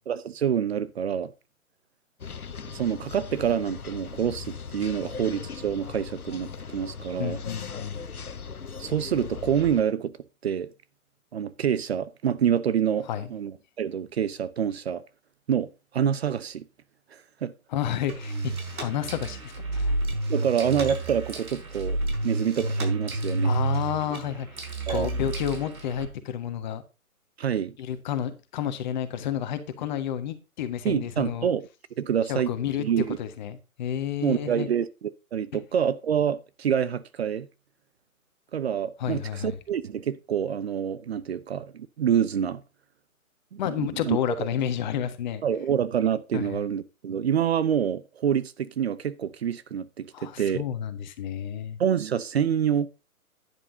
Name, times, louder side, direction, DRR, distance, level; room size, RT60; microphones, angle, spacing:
voice 1, 0.1-1.3 2.7-7.4 8.8-10.1 10.4-10.7 11.3-15.0 15.5-16.6 17.1-17.5 20.3-22.0 22.2-23.5 24.9-25.1 27.4-27.7 30.8-31.7 32.0-32.5 32.8-33.2 34.2-37.5 38.5-42.6 43.5-44.2 45.4-50.6 51.8-52.9, right 8 dB, 45° right, 0.8 m, -27 dB
sound 1, 2.2-9.8, left 5 dB, 85° left, 1.1 m, -39 dB
voice 2, 7.2-8.0 13.1-13.3 17.7-18.5 18.8-20.0 23.4-26.8 27.8-31.5 32.3-34.7 39.0-39.6 43.6-45.4 46.3-46.7 50.1-51.8, left 9 dB, 30° left, 1.5 m, -31 dB
sound 2, 18.1-26.1, right 2 dB, 75° right, 4.6 m, -30 dB
11.0 x 10.5 x 2.7 m
figure-of-eight pair, 135°, 43 cm